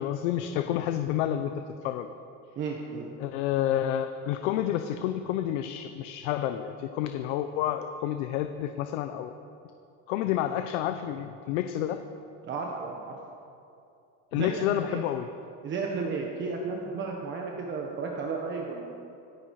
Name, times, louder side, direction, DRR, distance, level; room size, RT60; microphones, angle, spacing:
voice 1, 0.0-1.5 1.8-2.1 3.2-9.3 10.1-12.0 14.3-15.3, left 11 dB, 75° left, 8 dB, 0.9 m, -29 dB
voice 2, 2.5-3.1 12.4-13.1 14.3-15.0 15.6-18.9, right 4 dB, 30° right, 0 dB, 1.4 m, -33 dB
25.5 x 10.0 x 4.9 m, 2.6 s
cardioid pair, 165°, 37 cm